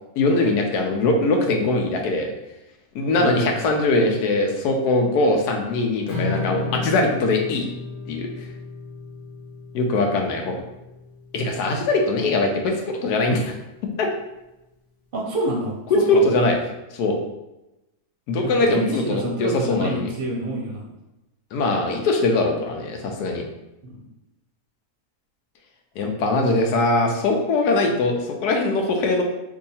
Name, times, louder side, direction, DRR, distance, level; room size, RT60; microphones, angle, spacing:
voice 1, 0.2-2.3 2.9-7.7 8.1-8.3 9.7-10.6 11.3-13.5 14.0-14.1 16.1-16.5 16.9-17.2 18.3-20.1 21.5-23.4 26.0-29.2, left 2 dB, 80° left, 2 dB, 1.1 m, -21 dB
voice 2, 3.2-3.5 15.1-16.2 18.4-20.8 23.8-23.9, right 1 dB, 50° right, -2 dB, 0.7 m, -27 dB
Strum, 6.1-12.3, left 3 dB, 55° left, 1.1 m, -33 dB
2.7 x 2.7 x 4.0 m, 0.96 s
omnidirectional pair, 1.7 m